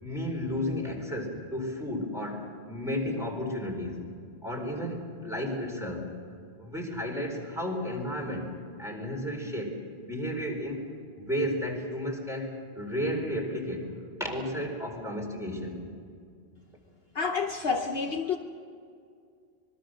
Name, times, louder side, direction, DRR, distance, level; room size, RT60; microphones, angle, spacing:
voice 1, 0.0-4.0 4.4-6.1 6.6-8.5 8.8-10.8 11.2-13.9 14.2-15.8, equal, ahead, 0 dB, 4.2 m, -33 dB
voice 2, 17.1-18.4, left 5 dB, 60° left, 4 dB, 1.1 m, -29 dB
25.5 x 22.0 x 6.4 m, 2.3 s
omnidirectional pair, 1.2 m